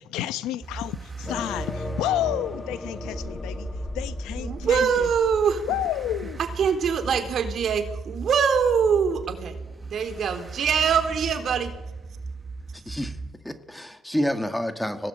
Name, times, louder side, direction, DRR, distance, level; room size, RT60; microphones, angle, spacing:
voice 1, 0.0-3.7 3.9-5.1 5.7-6.4, left 13 dB, 85° left, 1.0 m, -30 dB
sound 1, 0.6-13.3, right 3 dB, 20° right, 1.6 m, -38 dB
sound 2, 1.3-6.9, left 2 dB, 20° left, 1.5 m, -36 dB
voice 2, 4.4-5.6 6.4-9.5 9.9-11.7, right 7 dB, 50° right, 3.7 m, -23 dB
voice 3, 12.7-13.2 13.4-15.1, equal, 5° left, 1.9 m, -29 dB
24.5 x 17.5 x 8.9 m
cardioid pair, 105°, 0 cm